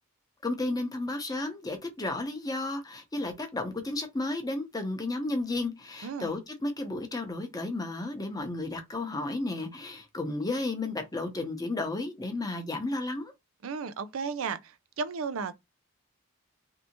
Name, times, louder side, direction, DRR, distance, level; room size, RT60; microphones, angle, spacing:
voice 1, 0.4-13.3, left 2 dB, 15° left, 0.7 m, -33 dB
voice 2, 6.0-6.4 13.6-15.5, right 5 dB, 70° right, 0.5 m, -34 dB
3.3 x 2.8 x 2.8 m
head